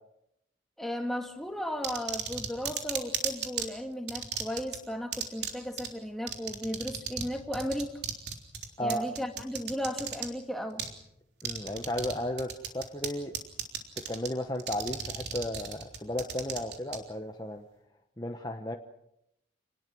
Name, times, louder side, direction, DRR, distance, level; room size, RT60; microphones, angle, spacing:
voice 1, 0.8-8.0 8.8-10.8, equal, ahead, 4 dB, 2.1 m, -35 dB
sound 1, 1.8-3.7 4.1-4.8 5.1-5.5 5.8-5.9 6.3-7.3 7.5-10.3 10.8-10.9 11.4-12.1 12.4-13.1 13.3-14.3 14.6-17.0, right 8 dB, 65° right, 3.6 m, -34 dB
voice 2, 11.4-13.4 14.1-17.7 18.2-18.8, left 1 dB, 20° left, 4 dB, 1.1 m, -34 dB
28.5 x 20.0 x 6.2 m, 0.80 s
head